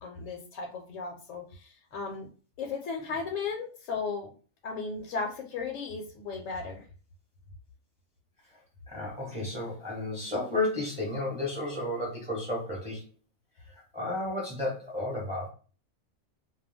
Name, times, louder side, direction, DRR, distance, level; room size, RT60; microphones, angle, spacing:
voice 1, 0.0-2.3 2.6-4.3 4.6-6.8, left 4 dB, 80° left, 1 dB, 0.9 m, -35 dB
voice 2, 8.9-13.1 13.9-15.5, left 2 dB, 5° right, -3 dB, 0.8 m, -32 dB
2.3 x 2.2 x 3.3 m, 0.37 s
omnidirectional pair, 1.3 m